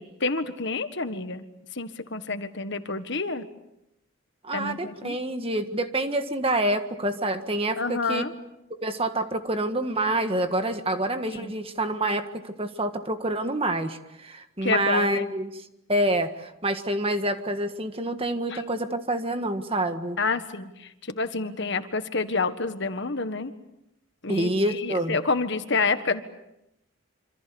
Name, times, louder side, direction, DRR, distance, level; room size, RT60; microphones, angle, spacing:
voice 1, 0.0-1.4 1.7-3.5 4.5-5.2 7.8-8.3 11.3-11.6 14.6-15.2 18.5-18.6 20.2-23.5 24.2-26.2, left 4 dB, 50° left, 9 dB, 1.6 m, -28 dB
voice 2, 4.4-8.2 8.7-15.6 15.9-20.2 24.3-25.2, right 1 dB, 25° right, 8 dB, 1.6 m, -27 dB
26.5 x 26.5 x 7.1 m, 0.86 s
head